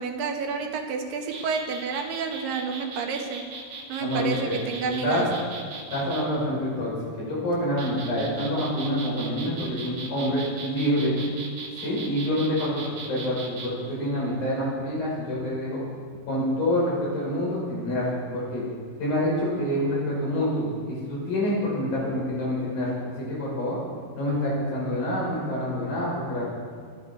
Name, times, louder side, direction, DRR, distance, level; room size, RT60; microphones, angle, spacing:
voice 1, 0.0-3.4 3.9-5.3, right 5 dB, 65° right, 3 dB, 3.0 m, -30 dB
sound 1, 1.2-6.2 7.5-13.7, right 3 dB, 45° right, 2.0 m, -39 dB
voice 2, 4.0-5.2 5.9-6.9 7.2-11.2 11.8-15.8 16.3-18.6 19.0-23.8 24.2-26.4, equal, 65° left, -5 dB, 7.6 m, -27 dB
26.0 x 11.0 x 4.6 m, 2.1 s
omnidirectional pair, 4.5 m